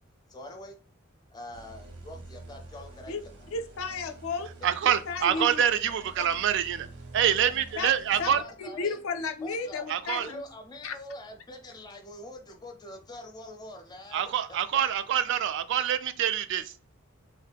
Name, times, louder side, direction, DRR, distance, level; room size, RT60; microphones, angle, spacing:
voice 1, 0.3-0.8 1.3-3.4 4.6-4.7 5.3-6.0 7.2-7.5 8.3-9.0 9.4-9.9 10.2-14.3 14.7-14.8, left 1 dB, 20° left, 4 dB, 0.6 m, -44 dB
sound 1, 1.5-8.4, right 2 dB, 85° right, 0.8 m, -48 dB
voice 2, 3.5-4.5 4.8-5.6 7.8-7.9 8.2-8.3 8.6-10.4 10.8-10.9, left 4 dB, 70° left, 7 dB, 0.4 m, -33 dB
voice 3, 4.6-6.9 7.1-8.4 9.9-10.3 14.1-16.7, right 9 dB, 60° right, 12 dB, 0.3 m, -26 dB
3.0 x 2.2 x 3.3 m, 0.35 s
head